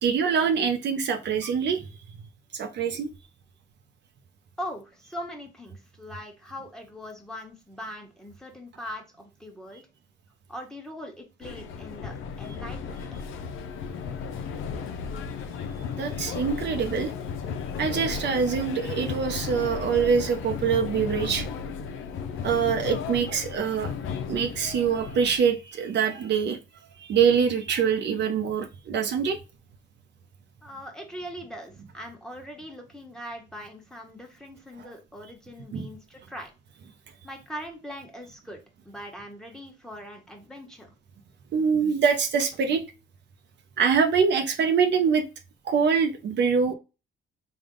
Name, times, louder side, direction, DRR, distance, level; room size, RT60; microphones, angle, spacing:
voice 1, 0.0-1.8 2.5-3.1 16.0-17.1 17.8-21.5 22.4-23.9 24.3-26.6 27.0-29.4 35.7-35.9 41.5-42.8 43.8-45.2 45.6-46.7, right 6 dB, 60° right, 5 dB, 0.7 m, -24 dB
voice 2, 4.6-9.8 10.5-13.0 30.6-36.5 37.2-38.6 38.8-40.9, equal, 5° left, 2 dB, 1.2 m, -41 dB
sound 1, 11.4-25.4, left 6 dB, 85° left, 0.5 m, -34 dB
3.5 x 2.3 x 3.7 m, 0.29 s
cardioid pair, 90°, 20 cm